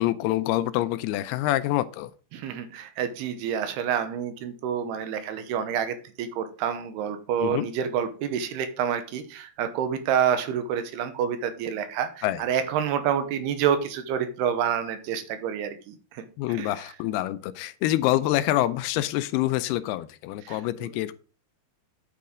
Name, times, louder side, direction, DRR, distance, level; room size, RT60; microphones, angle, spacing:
voice 1, 0.0-2.1 7.4-7.7 12.2-12.4 16.4-21.1, left 15 dB, 85° left, 14 dB, 2.6 m, -26 dB
voice 2, 2.3-16.7 20.5-20.9, right 8 dB, 85° right, 9 dB, 3.1 m, -28 dB
8.9 x 8.5 x 3.8 m, 0.36 s
omnidirectional pair, 4.6 m